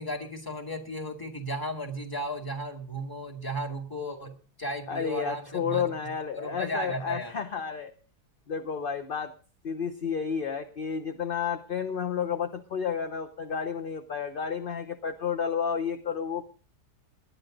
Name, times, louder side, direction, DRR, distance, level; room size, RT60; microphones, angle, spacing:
voice 1, 0.0-5.8 6.4-7.3, equal, 15° left, 3 dB, 2.2 m, -35 dB
voice 2, 4.9-7.9 8.5-9.3 9.6-16.4, left 6 dB, 45° left, 7 dB, 0.8 m, -31 dB
19.0 x 11.0 x 3.9 m, 0.39 s
omnidirectional pair, 1.7 m